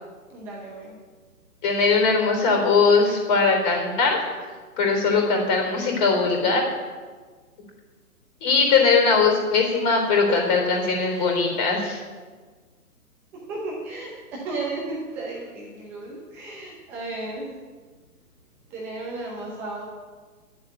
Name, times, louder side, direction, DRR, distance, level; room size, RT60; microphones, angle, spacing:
voice 1, 0.3-1.0 11.1-11.4 13.5-17.6 18.7-19.8, right 2 dB, 5° right, -4 dB, 0.5 m, -34 dB
voice 2, 1.6-4.3 4.8-6.6 8.4-12.0, left 4 dB, 30° left, 2 dB, 3.6 m, -20 dB
11.0 x 7.6 x 9.2 m, 1.5 s
hypercardioid pair, 150°, 45 cm